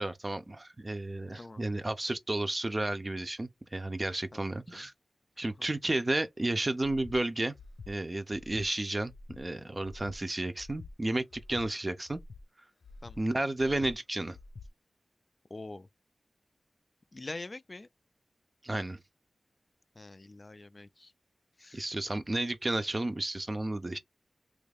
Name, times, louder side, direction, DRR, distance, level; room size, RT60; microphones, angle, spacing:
voice 1, 0.0-4.9 5.4-7.5 7.9-12.2 13.2-14.4 18.6-19.0 21.7-24.0, right 2 dB, 30° right, 0.5 m, -32 dB
Breathing, 7.0-7.2 7.5-7.9 8.3-8.7 9.0-9.4 9.8-10.2 10.6-10.9 11.3-11.7 12.1-12.4 12.8-13.2 13.6-13.9 14.3-14.7, left 3 dB, 80° left, 0.6 m, -48 dB
voice 2, 15.5-15.8 17.1-17.9 20.0-20.9 21.6-21.8, left 2 dB, 40° left, 0.3 m, -43 dB
3.0 x 2.4 x 3.4 m
wide cardioid pair, 70°, 0 cm